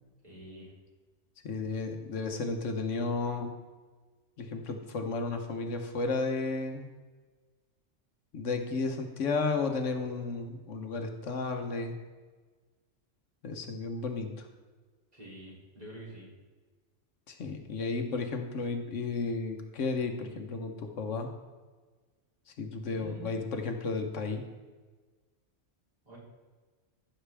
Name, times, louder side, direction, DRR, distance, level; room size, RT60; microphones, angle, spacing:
voice 1, 0.2-0.7 15.1-16.3 22.9-23.3 26.0-26.2, right 1 dB, 35° right, -7 dB, 3.2 m, -47 dB
voice 2, 1.4-3.5 4.4-6.9 8.3-11.9 13.4-14.5 17.3-21.3 22.6-24.4, left 3 dB, 80° left, 5 dB, 1.3 m, -33 dB
14.5 x 6.4 x 3.4 m, 1.4 s
omnidirectional pair, 1.2 m